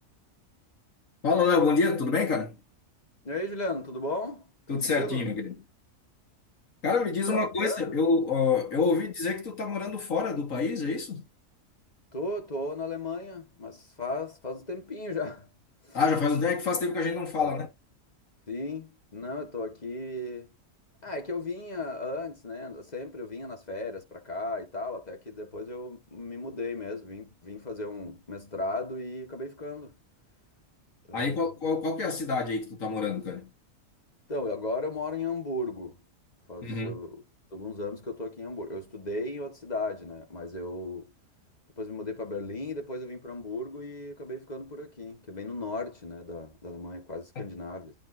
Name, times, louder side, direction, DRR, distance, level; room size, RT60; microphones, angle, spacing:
voice 1, 1.2-2.6 4.7-5.6 6.8-11.2 15.9-17.7 31.1-33.5 36.6-37.0 47.4-47.5, left 4 dB, 70° left, 2.1 m, -27 dB
voice 2, 3.2-5.3 7.3-7.8 8.9-9.0 12.1-15.5 15.8-16.0 17.4-17.5 18.5-20.5 21.0-29.9 31.1-31.5 34.3-36.0 36.5-37.2 37.5-41.1 41.8-47.9, left 2 dB, 30° left, 1.8 m, -36 dB
10.5 x 4.5 x 2.7 m
omnidirectional pair, 1.4 m